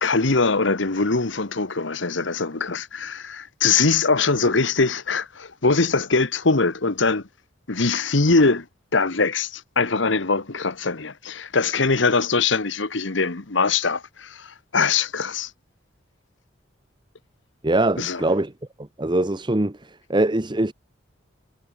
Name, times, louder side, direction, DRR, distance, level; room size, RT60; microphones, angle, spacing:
voice 1, 0.0-7.2 7.7-8.6 8.9-15.5 18.0-18.3, left 4 dB, 65° left, 1.4 m, -22 dB
voice 2, 17.6-18.5 19.0-19.7 20.1-20.7, right 2 dB, 25° right, 1.0 m, -22 dB
head